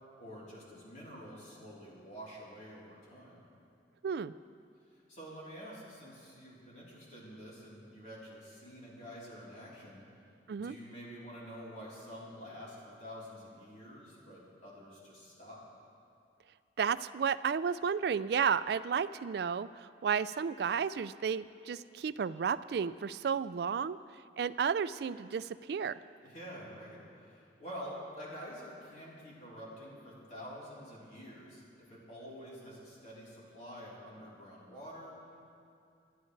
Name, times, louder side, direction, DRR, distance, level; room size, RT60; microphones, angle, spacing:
voice 1, 0.2-3.5 4.9-10.1 10.5-15.6 26.2-35.1, equal, 40° left, -7 dB, 3.6 m, -48 dB
voice 2, 4.0-4.3 10.5-10.8 16.8-24.0 24.4-26.0, right 6 dB, 60° right, 16 dB, 0.3 m, -32 dB
25.5 x 11.0 x 3.2 m, 2.4 s
head